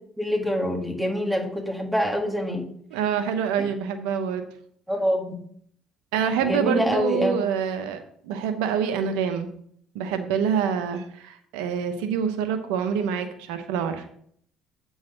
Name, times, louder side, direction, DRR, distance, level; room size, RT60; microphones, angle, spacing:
voice 1, 0.2-2.7 4.9-5.3 6.4-7.4, equal, 10° right, 1 dB, 2.0 m, -25 dB
voice 2, 2.9-4.4 6.1-9.5 9.9-14.1, right 7 dB, 90° right, 8 dB, 0.8 m, -26 dB
8.7 x 4.0 x 6.1 m, 0.64 s
supercardioid pair, 85°, 0 cm